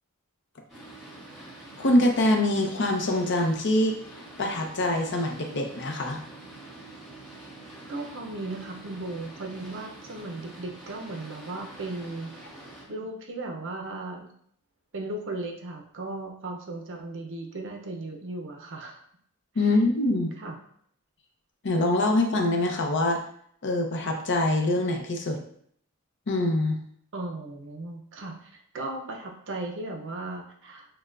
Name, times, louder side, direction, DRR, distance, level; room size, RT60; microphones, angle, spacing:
Boat Water vehicle, 0.7-12.9, right 2 dB, ahead, 1.2 m, -46 dB
voice 1, 1.8-4.0 4.4-6.2 19.6-20.3 21.6-23.2 23.6-25.4 26.3-26.8, left 1 dB, 55° left, 3 dB, 0.6 m, -24 dB
voice 2, 7.9-12.6 12.9-14.3 14.9-19.0 20.4-20.5 27.1-30.9, right 2 dB, 60° right, 2 dB, 0.7 m, -36 dB
6.4 x 2.2 x 2.5 m, 0.66 s
head